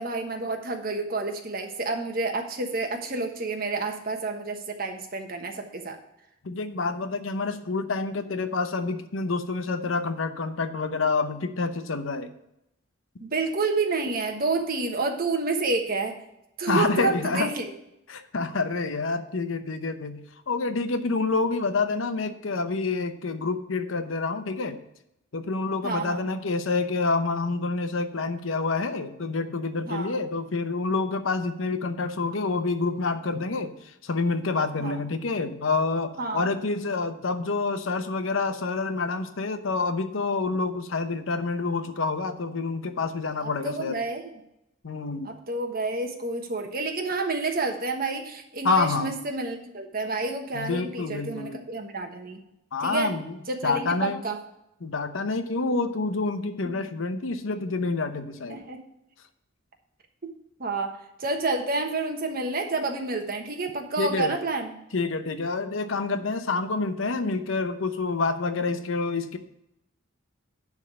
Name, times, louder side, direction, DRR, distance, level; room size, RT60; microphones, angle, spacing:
voice 1, 0.0-6.0 13.2-16.2 16.6-17.7 25.8-26.3 29.9-30.2 34.8-35.0 36.2-36.5 43.4-44.2 45.2-52.4 52.8-53.2 53.5-54.4 56.6-56.8 58.5-58.8 60.2-60.3 60.6-64.7, right 3 dB, 50° right, 4 dB, 1.2 m, -29 dB
voice 2, 6.4-12.3 16.7-17.5 18.1-24.8 25.3-44.0 44.8-45.3 48.6-49.2 50.5-51.6 52.7-53.4 53.6-54.2 54.8-58.6 64.0-64.4 64.9-69.4, left 3 dB, 80° left, 9 dB, 0.8 m, -28 dB
11.0 x 3.6 x 7.4 m, 0.84 s
head